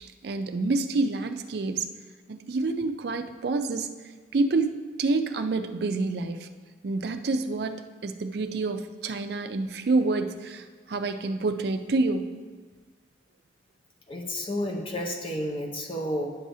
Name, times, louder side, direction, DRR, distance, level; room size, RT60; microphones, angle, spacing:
voice 1, 0.0-1.9 2.3-3.9 4.3-6.5 6.8-12.3, right 3 dB, 55° right, 8 dB, 0.4 m, -28 dB
voice 2, 14.1-16.3, equal, 30° left, 1 dB, 0.8 m, -31 dB
10.0 x 6.2 x 2.7 m, 1.4 s
head